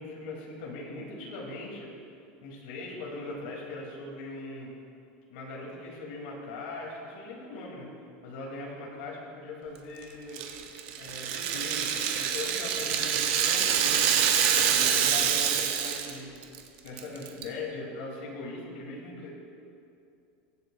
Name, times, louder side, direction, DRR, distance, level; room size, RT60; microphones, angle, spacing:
voice 1, 0.0-1.9 2.4-4.7 5.3-7.9 8.2-10.4 11.0-14.0 14.5-16.3 16.8-19.3, left 2 dB, 75° left, -3 dB, 2.7 m, -40 dB
Rattle (instrument), 10.3-16.2 16.4-16.6 17.0-17.4, right 8 dB, 55° right, 1.0 m, -26 dB
23.0 x 7.7 x 2.4 m, 2.5 s
supercardioid pair, 160°, 5 cm